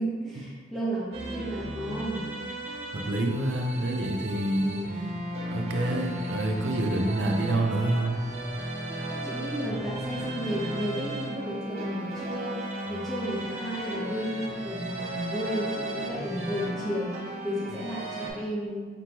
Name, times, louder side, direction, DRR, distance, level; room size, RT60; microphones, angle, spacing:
voice 1, 0.0-2.3 4.6-5.0 9.2-18.8, equal, ahead, -9 dB, 0.8 m, -33 dB
sound 1, 1.1-18.3, right 1 dB, 35° right, 0.6 m, -35 dB
voice 2, 2.9-4.8 5.5-8.2, right 1 dB, 85° right, 3 dB, 0.5 m, -27 dB
5.1 x 2.9 x 2.9 m, 1.4 s
head